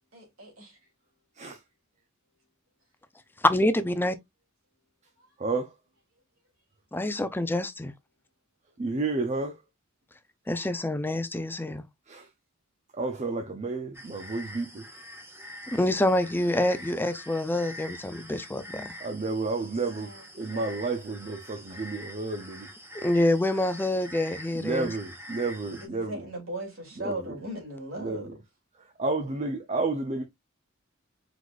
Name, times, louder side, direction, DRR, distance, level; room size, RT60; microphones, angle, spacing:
voice 1, 0.1-0.8 5.2-5.3 19.3-20.3 20.5-20.7 25.6-28.3, right 1 dB, 80° right, 2.5 m, -39 dB
voice 2, 3.4-4.2 6.9-7.9 10.5-11.8 15.7-18.9 23.0-24.9, left 1 dB, 10° left, 0.5 m, -26 dB
voice 3, 5.4-5.7 8.8-9.6 12.1-12.3 12.9-14.9 19.0-20.1 20.3-22.7 24.5-26.2 27.0-27.2 28.0-28.3 29.0-30.2, right 3 dB, 35° right, 0.6 m, -31 dB
sound 1, 13.9-25.9, equal, 10° right, 1.3 m, -45 dB
4.8 x 4.0 x 2.4 m
head